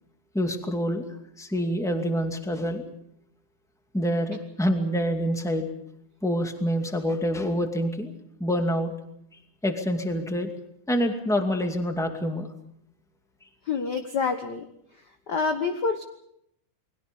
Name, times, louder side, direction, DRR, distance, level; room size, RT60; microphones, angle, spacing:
voice 1, 0.3-1.0 1.4-2.8 3.9-5.7 6.2-8.1 8.4-8.9 9.6-10.5 10.9-12.5, equal, ahead, 4 dB, 1.7 m, -26 dB
voice 2, 13.7-14.7 15.3-16.0, left 5 dB, 60° left, 6 dB, 1.1 m, -27 dB
30.0 x 21.0 x 5.4 m, 0.72 s
omnidirectional pair, 3.6 m